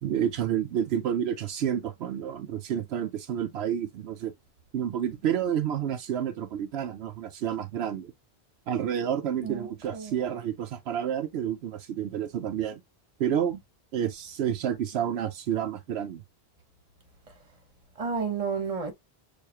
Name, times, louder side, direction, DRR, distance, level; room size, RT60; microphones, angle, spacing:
voice 1, 0.0-4.3 4.7-8.1 8.7-12.8 13.2-13.6 13.9-16.2, right 9 dB, 80° right, 0.8 m, -29 dB
voice 2, 9.4-10.2 18.0-18.9, right 5 dB, 35° right, 1.2 m, -31 dB
6.6 x 2.5 x 2.8 m
omnidirectional pair, 1.1 m